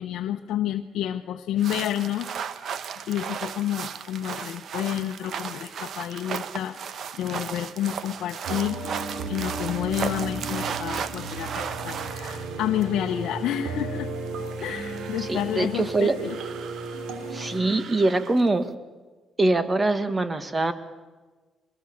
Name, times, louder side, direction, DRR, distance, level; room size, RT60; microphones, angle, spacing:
voice 1, 0.0-2.3 3.1-8.8 9.3-14.1 14.6-16.4, left 11 dB, 80° left, 4 dB, 0.9 m, -29 dB
sound 1, 1.6-12.8 14.3-15.3 16.2-17.2 17.5-18.5, right 7 dB, 65° right, 1.1 m, -35 dB
sound 2, 8.4-17.6, right 3 dB, 90° right, 3.6 m, -34 dB
voice 2, 15.2-16.2 17.3-18.7 19.4-20.7, right 2 dB, 25° right, 11 dB, 1.9 m, -23 dB
24.5 x 21.0 x 7.3 m, 1.3 s
cardioid pair, 90°, 0 cm